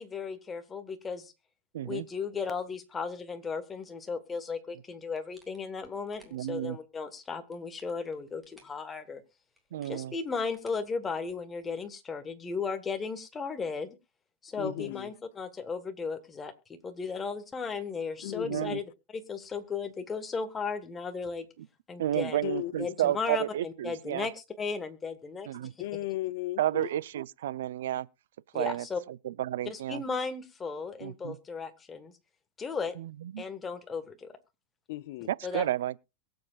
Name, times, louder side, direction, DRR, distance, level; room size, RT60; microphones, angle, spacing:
voice 1, 0.0-1.3 1.8-9.2 9.9-14.0 14.4-18.8 19.1-21.5 21.9-22.4 22.8-25.5 28.5-29.0 29.6-32.1 32.6-32.9 33.4-34.3 35.4-35.7, left 5 dB, 15° left, 1.4 m, -35 dB
voice 2, 1.7-2.1 6.3-6.8 9.7-10.1 14.6-14.9 18.4-18.8 22.0-24.3 25.5-25.7 26.6-28.1 28.5-28.8 29.2-30.0 31.0-31.4 33.0-33.4 35.3-36.0, right 12 dB, 80° right, 0.5 m, -31 dB
sound 1, 5.1-6.6 7.3-8.8 9.6-11.6, right 1 dB, ahead, 2.9 m, -62 dB
voice 3, 14.6-15.1 18.2-18.7 22.4-22.9 25.8-26.9 34.9-35.3, left 16 dB, 55° left, 0.5 m, -36 dB
23.0 x 7.8 x 2.4 m
supercardioid pair, 155°, 0 cm